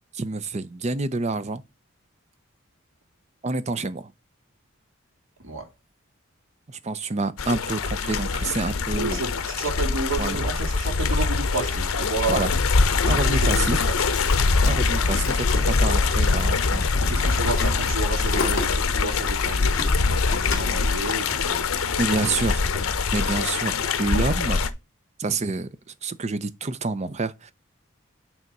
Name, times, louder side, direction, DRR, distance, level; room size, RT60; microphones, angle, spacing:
voice 1, 0.1-1.6 3.4-4.1 6.7-9.2 10.2-10.4 12.3-12.5 13.0-13.8 14.6-17.1 22.0-22.6 23.1-24.6 25.2-27.5, right 3 dB, 35° right, 0.6 m, -28 dB
sound 1, 7.4-24.7, left 4 dB, 85° left, 0.7 m, -23 dB
voice 2, 8.9-12.5 13.1-13.8 14.1-14.2 14.6-14.8 17.0-22.4 22.7-22.9, right 2 dB, 75° right, 2.6 m, -31 dB
sound 2, 12.5-21.8, left 4 dB, 60° left, 2.3 m, -36 dB
9.1 x 3.6 x 5.3 m
head